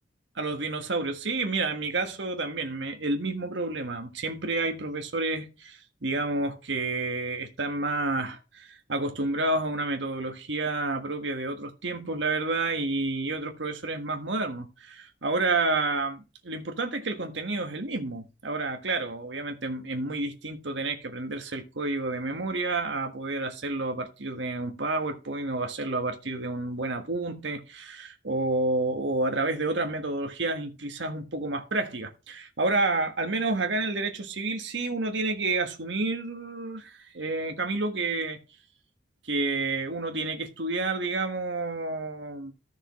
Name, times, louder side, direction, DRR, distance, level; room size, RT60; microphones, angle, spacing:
voice 1, 0.4-38.4 39.3-42.5, right 2 dB, 75° right, 1.5 m, -30 dB
14.5 x 6.4 x 3.1 m
head